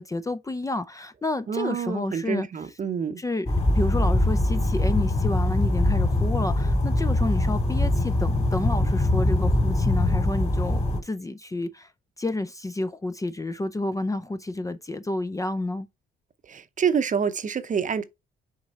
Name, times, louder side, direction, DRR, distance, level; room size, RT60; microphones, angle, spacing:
voice 1, 0.0-2.5 3.2-11.9 12.2-15.9, left 2 dB, 15° left, 0.5 m, -30 dB
voice 2, 1.5-3.2 16.5-18.0, right 7 dB, 40° right, 0.7 m, -27 dB
sound 1, 3.5-11.0, left 1 dB, 30° left, 3.1 m, -22 dB
6.4 x 3.6 x 4.1 m
cardioid pair, 90°, 20 cm